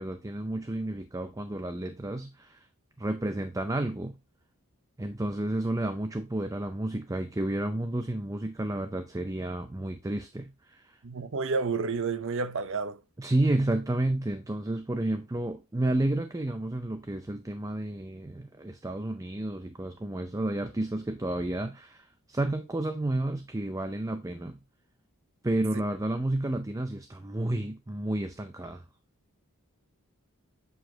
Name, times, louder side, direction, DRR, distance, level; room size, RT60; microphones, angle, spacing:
voice 1, 0.0-2.7 3.0-4.2 5.0-11.0 13.2-24.6 25.4-28.8, right 1 dB, 15° right, 0.5 m, -31 dB
voice 2, 11.0-13.0, right 4 dB, 60° right, 0.7 m, -30 dB
8.1 x 4.9 x 2.8 m
head